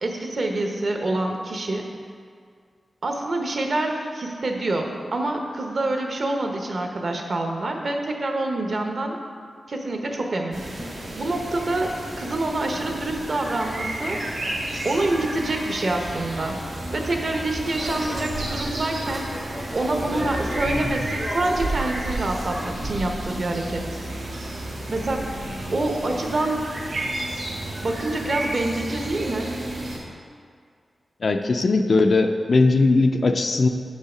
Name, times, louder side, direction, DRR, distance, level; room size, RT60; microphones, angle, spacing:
voice 1, 0.0-1.9 3.0-9.2 9.7-14.2 14.8-16.6 16.9-19.3 19.7-23.8 24.9-25.3 25.7-26.7 27.8-29.5, right 2 dB, 50° right, 3 dB, 0.8 m, -26 dB
sound 1, 10.5-30.0, right 1 dB, 75° right, 2.0 m, -32 dB
sound 2, 17.5-22.7, right 1 dB, 15° right, 0.6 m, -35 dB
voice 2, 31.2-33.7, left 3 dB, 50° left, 6 dB, 0.4 m, -19 dB
6.6 x 5.5 x 4.9 m, 2.1 s
wide cardioid pair, 140°, 0 cm